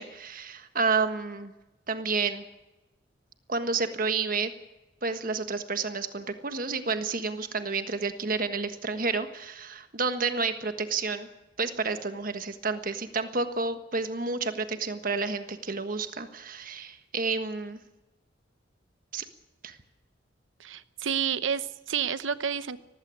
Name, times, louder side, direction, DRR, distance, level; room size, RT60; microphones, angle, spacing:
voice 1, 0.0-1.5 1.9-2.4 3.5-4.5 5.0-11.3 11.6-17.8 19.1-19.2 19.6-19.8, right 4 dB, 45° right, 9 dB, 1.5 m, -30 dB
voice 2, 20.6-22.8, right 7 dB, 90° right, 14 dB, 0.9 m, -30 dB
18.5 x 16.0 x 9.6 m, 1.0 s
head